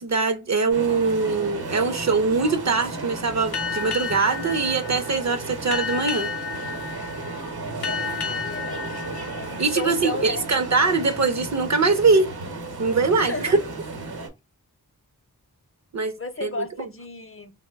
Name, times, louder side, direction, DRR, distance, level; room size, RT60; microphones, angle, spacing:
voice 1, 0.0-6.3 9.6-12.3 12.8-13.6 15.9-16.1 16.4-16.6, right 4 dB, 45° right, 0.5 m, -22 dB
sound 1, 0.7-14.3, right 3 dB, 70° right, 0.8 m, -34 dB
Boat Water vehicle, 3.5-10.6, left 6 dB, 85° left, 0.6 m, -33 dB
voice 2, 7.8-8.8 9.3-10.5 13.1-13.6 16.2-17.5, left 2 dB, 35° left, 0.5 m, -34 dB
3.1 x 2.1 x 3.3 m
wide cardioid pair, 45°, 39 cm